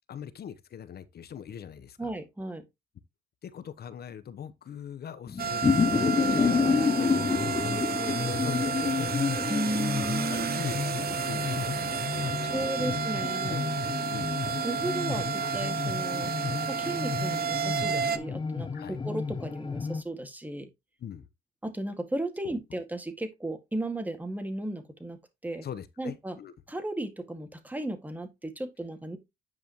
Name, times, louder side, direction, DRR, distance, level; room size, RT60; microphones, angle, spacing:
voice 1, 0.1-2.1 3.4-7.7 8.0-9.1 10.3-13.0 13.5-13.6 14.1-14.3 15.4-15.5 18.7-19.0 21.0-21.3 25.6-26.5, left 8 dB, 55° left, 0.8 m, -42 dB
voice 2, 2.0-2.6 9.5-10.6 12.5-13.6 14.6-16.3 16.7-20.7 21.6-25.7 26.0-26.4 26.7-29.2, right 1 dB, 10° right, 1.8 m, -35 dB
sound 1, 5.3-20.0, left 5 dB, 25° left, 0.6 m, -30 dB
sound 2, 5.4-18.2, right 7 dB, 50° right, 0.8 m, -32 dB
9.6 x 5.0 x 2.9 m
cardioid pair, 90°, 20 cm